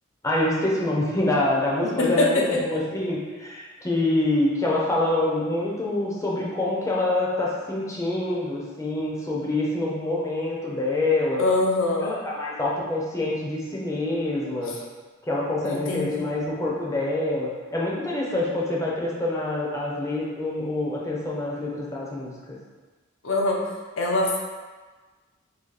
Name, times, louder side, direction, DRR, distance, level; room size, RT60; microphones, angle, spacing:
voice 1, 0.2-11.4 12.0-14.8 15.2-22.3, left 2 dB, 15° left, -4 dB, 0.6 m, -26 dB
voice 2, 2.0-2.3 11.4-12.1 15.6-16.3 23.2-23.6 24.0-24.4, left 2 dB, 70° left, -1 dB, 0.6 m, -23 dB
2.8 x 2.8 x 3.9 m, 1.3 s
head